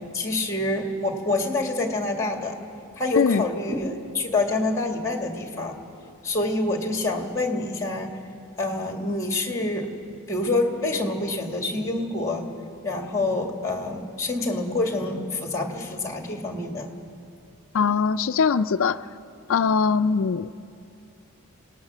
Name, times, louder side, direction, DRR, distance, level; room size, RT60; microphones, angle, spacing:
voice 1, 0.1-2.6 3.0-5.8 6.2-8.1 8.6-9.9 10.3-12.5 12.8-16.9, left 2 dB, 15° left, 3 dB, 1.9 m, -27 dB
voice 2, 17.7-19.0 19.5-20.5, left 5 dB, 60° left, 12 dB, 0.4 m, -21 dB
28.0 x 18.0 x 6.2 m, 2.5 s
head